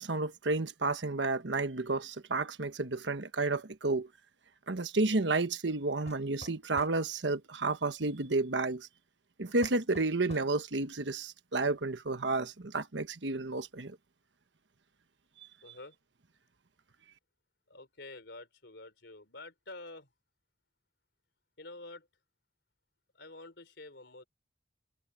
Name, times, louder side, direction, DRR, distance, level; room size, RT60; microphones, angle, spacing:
voice 1, 0.0-4.1 4.7-8.9 9.4-14.0, right 3 dB, 75° right, 1.2 m, -31 dB
sound 1, 6.1-7.0 9.6-10.5, left 1 dB, 40° left, 5.4 m, -48 dB
voice 2, 15.6-16.0 17.7-20.1 21.6-22.1 23.1-24.3, left 2 dB, 65° left, 4.4 m, -48 dB
head